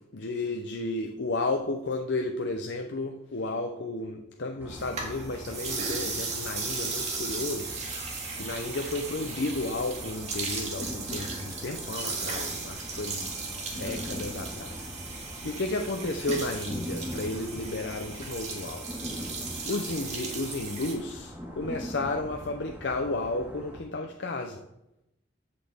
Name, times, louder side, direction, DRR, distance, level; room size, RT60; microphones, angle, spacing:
voice 1, 0.1-7.7 8.3-13.3 13.7-18.9 19.6-24.6, left 2 dB, 70° left, 3 dB, 0.7 m, -33 dB
sound 1, 4.6-23.8, equal, 10° right, 2.1 m, -42 dB
sound 2, 4.7-20.9, right 4 dB, 40° right, 2.0 m, -36 dB
14.0 x 6.0 x 3.6 m, 0.88 s
head